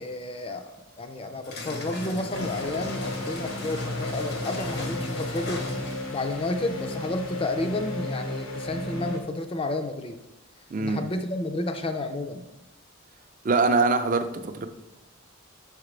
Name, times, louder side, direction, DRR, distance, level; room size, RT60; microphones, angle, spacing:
voice 1, 0.0-5.7 6.1-10.2 10.8-12.4, left 2 dB, 25° left, 7 dB, 0.4 m, -31 dB
sound 1, 1.4-6.2, left 2 dB, 55° left, 0.8 m, -35 dB
sound 2, 2.3-9.2, left 1 dB, 80° left, 1.0 m, -34 dB
voice 2, 10.7-11.0 13.4-14.7, right 3 dB, 40° right, 8 dB, 0.4 m, -23 dB
6.6 x 4.9 x 3.2 m, 1.0 s
head